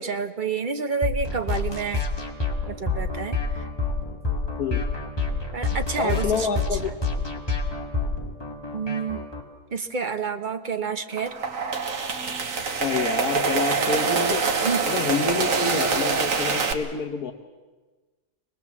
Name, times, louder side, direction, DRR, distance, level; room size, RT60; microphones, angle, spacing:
voice 1, 0.0-2.0 2.7-3.4 5.5-6.6 8.7-9.3 9.7-11.3 14.6-14.8, right 5 dB, 40° right, 8 dB, 0.8 m, -28 dB
sound 1, 1.0-9.4, left 3 dB, 15° left, 2.0 m, -28 dB
voice 2, 6.0-6.9 12.8-14.4 14.8-17.3, left 6 dB, 65° left, 2 dB, 1.6 m, -27 dB
sound 2, 11.1-16.7, right 5 dB, 55° right, 1.7 m, -25 dB
25.0 x 19.0 x 7.2 m, 1.3 s
omnidirectional pair, 1.8 m